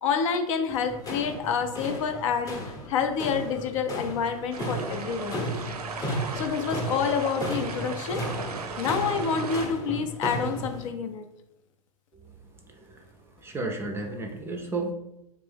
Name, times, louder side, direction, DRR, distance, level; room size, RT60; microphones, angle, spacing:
voice 1, 0.0-2.5 2.9-5.4 6.3-8.2 8.8-11.2, left 6 dB, 55° left, 6 dB, 0.6 m, -28 dB
sound 1, 0.7-10.9, equal, 20° left, 0.8 m, -35 dB
sound 2, 4.5-9.7, right 5 dB, 80° right, 0.6 m, -36 dB
voice 2, 12.7-13.0 13.4-14.9, right 2 dB, 10° right, 3 dB, 0.5 m, -32 dB
3.3 x 3.1 x 3.5 m, 0.85 s
hypercardioid pair, 105°, 19 cm